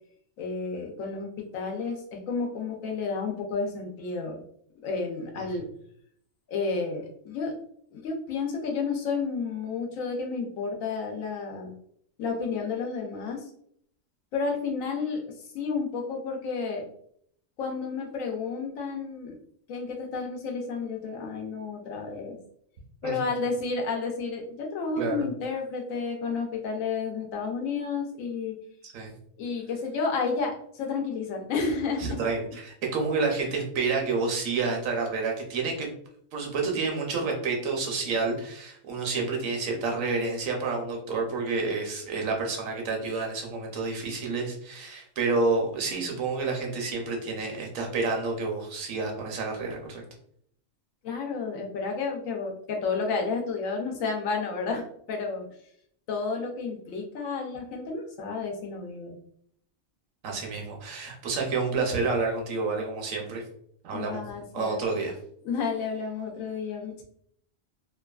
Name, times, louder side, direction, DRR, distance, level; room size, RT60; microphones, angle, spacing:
voice 1, 0.4-1.3 1.5-4.4 4.8-5.6 6.5-7.5 7.9-11.7 12.2-13.4 14.3-15.2 15.5-16.8 17.6-19.4 19.7-22.4 23.0-28.5 29.4-32.2 51.0-55.4 56.1-59.2 63.9-64.9 65.4-67.0, left 4 dB, 85° left, 2 dB, 1.0 m, -31 dB
voice 2, 32.0-35.9 36.3-50.0 60.2-63.4 63.8-64.2 64.5-65.1, right 4 dB, 80° right, 1 dB, 1.1 m, -29 dB
2.9 x 2.3 x 2.3 m, 0.66 s
omnidirectional pair, 1.4 m